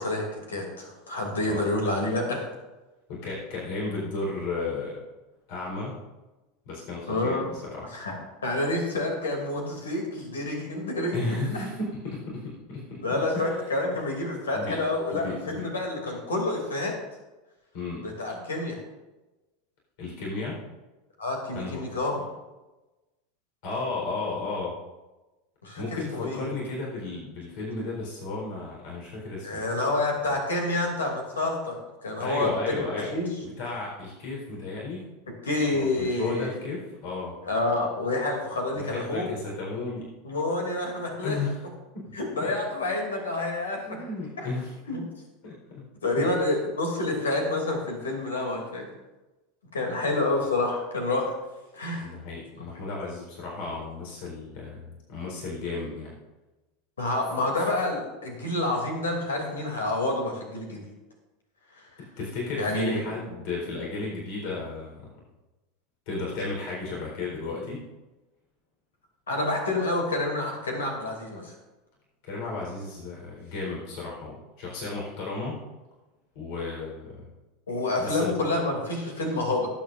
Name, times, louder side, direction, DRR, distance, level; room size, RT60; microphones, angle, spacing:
voice 1, 0.0-2.4 7.1-7.5 7.8-8.2 8.4-11.2 13.0-16.9 18.0-18.8 21.2-22.3 25.6-26.4 29.4-33.3 35.4-36.5 37.4-39.3 40.2-41.4 42.1-44.0 44.4-44.5 44.9-45.0 46.0-48.9 49.7-51.3 51.7-52.1 57.0-60.9 61.8-61.9 62.6-63.0 69.3-71.5 77.7-79.7, left 2 dB, 75° left, 1 dB, 2.8 m, -28 dB
voice 2, 3.1-5.0 5.5-6.0 6.7-7.9 11.1-13.0 13.3-13.8 14.5-14.8 15.1-15.6 17.7-18.0 20.0-20.6 21.5-21.8 23.6-24.7 25.8-29.6 32.2-33.1 33.4-35.0 35.7-37.4 38.7-40.1 41.2-41.6 41.9-42.1 42.4-42.5 43.8-45.1 45.4-45.8 46.2-46.3 52.0-56.2 57.6-57.7 62.2-65.1 66.1-67.8 72.2-75.6 76.3-77.2 78.0-78.3, left 3 dB, 55° left, -3 dB, 4.2 m, -34 dB
19.0 x 8.5 x 2.6 m, 1.1 s
figure-of-eight pair, 80°, 0 cm